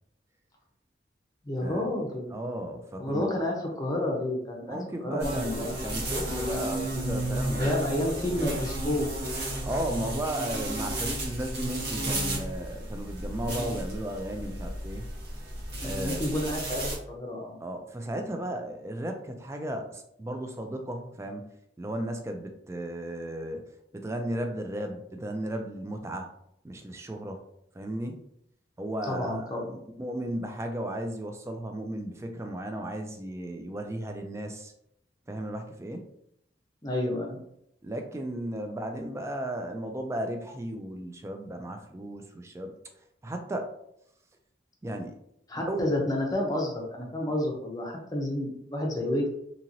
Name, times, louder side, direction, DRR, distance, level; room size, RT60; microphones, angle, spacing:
voice 1, 1.4-2.4 3.0-5.7 7.5-9.1 15.8-17.6 29.1-29.8 36.8-37.4 45.5-49.3, left 1 dB, 20° left, -1 dB, 0.6 m, -30 dB
voice 2, 2.3-3.2 4.7-7.8 9.6-15.1 15.8-16.2 17.6-21.4 21.8-23.6 23.9-26.3 26.6-27.4 27.7-28.2 28.8-34.7 35.3-36.1 37.8-42.7 43.2-43.7 44.8-45.2 45.5-45.8, right 1 dB, 15° right, 4 dB, 0.3 m, -35 dB
sound 1, 5.2-17.0, right 1 dB, 65° right, 1.0 m, -33 dB
2.9 x 2.8 x 2.6 m, 0.75 s
head